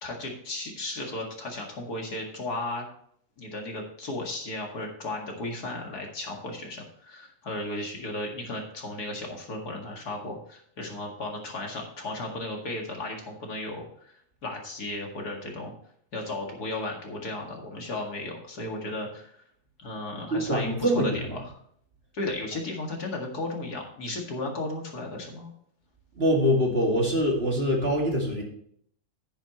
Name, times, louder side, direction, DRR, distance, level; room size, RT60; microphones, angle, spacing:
voice 1, 0.0-2.9 3.4-14.1 14.4-15.7 16.1-19.4 19.8-21.4 22.1-25.5, left 2 dB, 60° left, 1 dB, 2.5 m, -35 dB
voice 2, 20.3-21.4 26.2-28.4, equal, 35° right, -1 dB, 2.4 m, -24 dB
10.5 x 9.9 x 3.1 m, 0.65 s
omnidirectional pair, 1.9 m